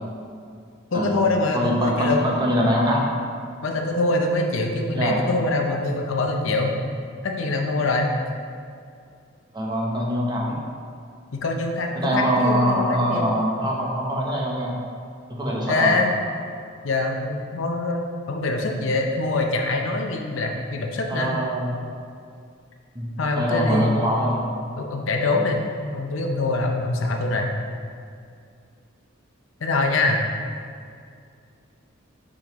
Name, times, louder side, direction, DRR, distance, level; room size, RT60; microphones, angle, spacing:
voice 1, 0.9-2.2 3.6-6.7 7.2-8.1 11.3-13.3 15.7-16.1 16.8-21.3 23.2-24.0 24.8-25.7 25.9-27.5 29.6-30.2, left 2 dB, 75° left, 2 dB, 0.6 m, -24 dB
voice 2, 1.5-3.1 4.9-5.2 9.5-10.6 12.0-14.7 15.3-16.0 21.1-21.8 22.9-24.4, equal, 20° right, -3 dB, 0.8 m, -23 dB
6.0 x 5.1 x 3.0 m, 2.2 s
head